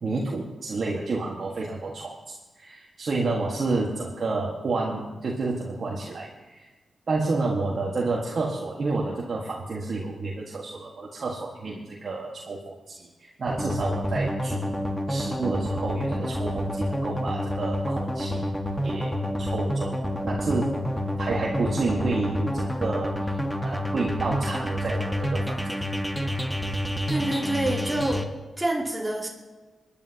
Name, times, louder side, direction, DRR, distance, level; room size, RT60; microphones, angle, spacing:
voice 1, 0.0-6.7 7.1-14.8 15.1-18.5 18.8-20.8 21.2-25.8, right 3 dB, 60° right, -3 dB, 1.6 m, -30 dB
sound 1, 13.5-28.2, equal, 5° left, 1.5 m, -28 dB
voice 2, 27.1-28.3 28.6-29.3, right 1 dB, 10° right, -3 dB, 2.9 m, -27 dB
23.5 x 10.5 x 2.9 m, 1.2 s
cardioid pair, 60°, 0 cm